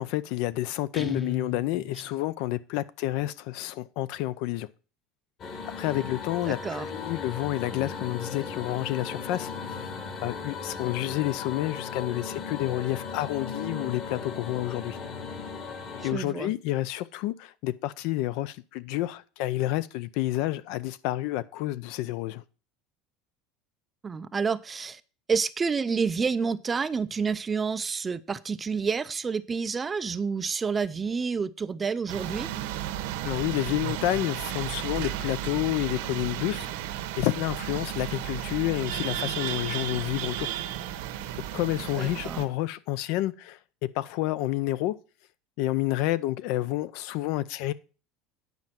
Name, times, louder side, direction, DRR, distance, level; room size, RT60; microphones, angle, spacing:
voice 1, 0.0-4.7 5.8-9.8 10.2-15.0 16.0-22.4 33.2-36.7 37.2-40.6 41.5-45.0 45.6-47.7, left 15 dB, 60° left, 0.5 m, -29 dB
Guitar, 0.9-2.2, left 4 dB, 5° left, 0.7 m, -36 dB
sound 1, 5.4-16.1, left 5 dB, 35° left, 1.5 m, -37 dB
voice 2, 6.5-6.9 16.0-16.5 24.0-25.0 25.3-32.5 42.0-42.4, right 5 dB, 15° right, 0.4 m, -29 dB
sound 2, 32.1-42.5, right 12 dB, 85° right, 1.2 m, -33 dB
9.5 x 5.3 x 5.8 m
cardioid pair, 160°, 0 cm